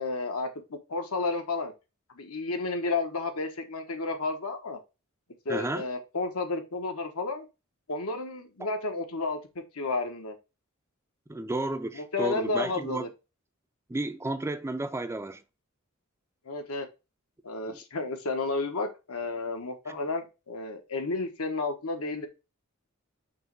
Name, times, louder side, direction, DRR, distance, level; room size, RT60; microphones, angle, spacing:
voice 1, 0.0-1.7 2.1-4.8 5.4-7.5 7.9-10.3 11.9-13.1 16.4-16.9 17.4-22.3, left 3 dB, 80° left, 1.2 m, -32 dB
voice 2, 5.5-5.9 11.3-13.1 13.9-15.4 17.6-17.8, right 2 dB, 10° right, 0.4 m, -32 dB
6.0 x 3.1 x 5.2 m
head